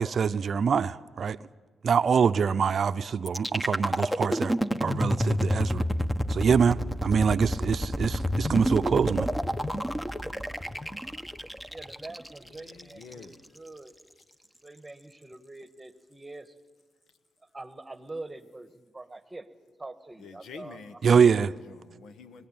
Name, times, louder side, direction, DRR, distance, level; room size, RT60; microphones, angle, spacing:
voice 1, 0.0-1.4 1.8-5.8 6.3-9.3 21.0-21.5, right 6 dB, 60° right, 0.6 m, -24 dB
sound 1, 3.3-13.3, equal, 5° left, 1.2 m, -29 dB
voice 2, 11.7-13.9 14.6-16.5 17.5-19.5 19.8-20.8, right 2 dB, 20° right, 1.6 m, -44 dB
voice 3, 12.5-13.5 20.2-22.5, left 5 dB, 80° left, 1.3 m, -46 dB
24.0 x 18.0 x 8.9 m
cardioid pair, 65°, 0 cm